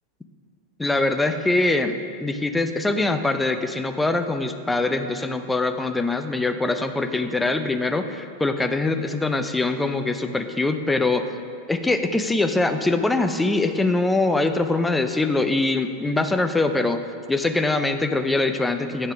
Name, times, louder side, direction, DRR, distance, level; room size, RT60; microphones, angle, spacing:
voice 1, 0.8-11.3 11.7-17.0 17.3-19.1, left 2 dB, 10° left, 7 dB, 0.5 m, -23 dB
9.0 x 5.3 x 4.9 m, 2.2 s
figure-of-eight pair, 90°, 0 cm